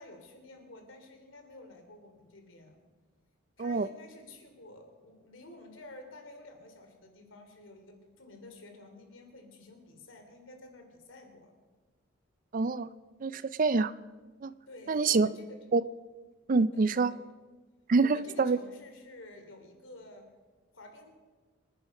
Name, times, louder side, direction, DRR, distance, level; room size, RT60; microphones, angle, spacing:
voice 1, 0.0-2.8 3.6-11.6 14.7-15.6 16.7-17.1 18.0-20.3 20.7-21.1, left 2 dB, 70° left, 5 dB, 3.2 m, -51 dB
voice 2, 12.5-12.9 13.2-13.9 14.4-14.5 14.9-15.3 15.7-15.8 16.5-17.2 17.9-18.6, right 4 dB, 40° right, 16 dB, 0.4 m, -26 dB
26.5 x 10.0 x 5.4 m, 1.3 s
head